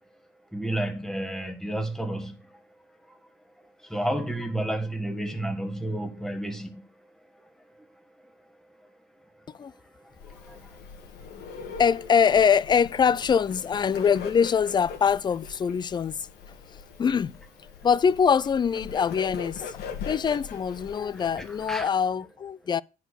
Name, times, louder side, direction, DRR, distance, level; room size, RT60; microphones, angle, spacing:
voice 1, 0.5-2.3 3.8-6.8 10.3-10.8 21.4-21.9, right 1 dB, 5° left, 1.7 m, -31 dB
Bird, 10.2-21.8, left 7 dB, 70° left, 1.8 m, -41 dB
voice 2, 11.8-16.2 17.0-17.3 17.8-19.8 20.1-22.8, left 7 dB, 25° left, 0.4 m, -23 dB
10.5 x 4.5 x 6.4 m
cardioid pair, 110°, 17 cm